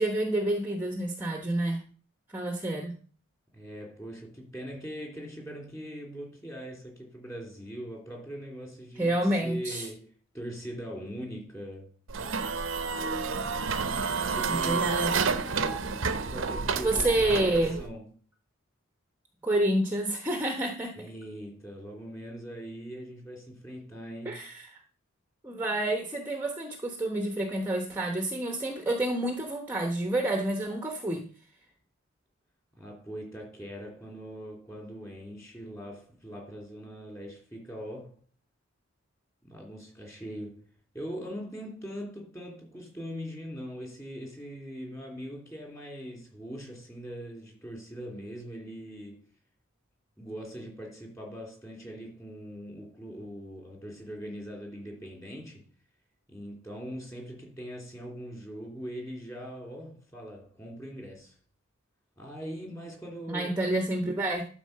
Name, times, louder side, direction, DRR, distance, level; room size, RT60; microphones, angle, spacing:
voice 1, 0.0-1.8 2.3-2.9 9.0-9.9 14.5-15.4 16.8-17.8 19.4-20.9 24.2-24.7 25.4-31.2 63.3-64.4, right 1 dB, 10° right, 0.9 m, -28 dB
voice 2, 3.5-10.1 10.3-11.9 14.2-14.9 16.3-18.0 20.9-24.4 32.8-38.2 39.4-40.7 40.9-49.1 50.2-55.6 56.3-61.4 62.2-63.6, equal, 15° left, 2.9 m, -41 dB
sound 1, 12.1-17.9, right 4 dB, 65° right, 0.7 m, -30 dB
12.0 x 4.3 x 6.6 m
head